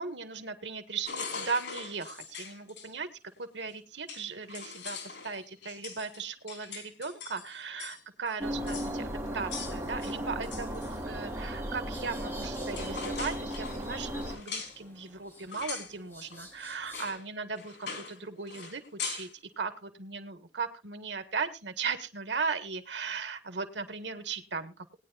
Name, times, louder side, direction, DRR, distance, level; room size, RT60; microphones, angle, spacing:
voice 1, 0.0-3.1 3.4-19.3 19.6-24.9, right 5 dB, 90° right, 9 dB, 1.6 m, -37 dB
sound 1, 1.1-2.9 3.7-3.8 4.1-8.0 8.3-8.4 8.7-8.9 9.5-11.0 12.2-12.4 12.7-14.8 15.5-15.9 16.3-16.4 16.9-17.2 17.5-18.2 18.5-19.3, left 5 dB, 85° left, 3.7 m, -41 dB
sound 2, 8.4-14.4, equal, 15° right, 3.7 m, -36 dB
sound 3, 11.9-17.1, equal, 10° left, 6.2 m, -53 dB
20.0 x 10.0 x 2.5 m, 0.29 s
head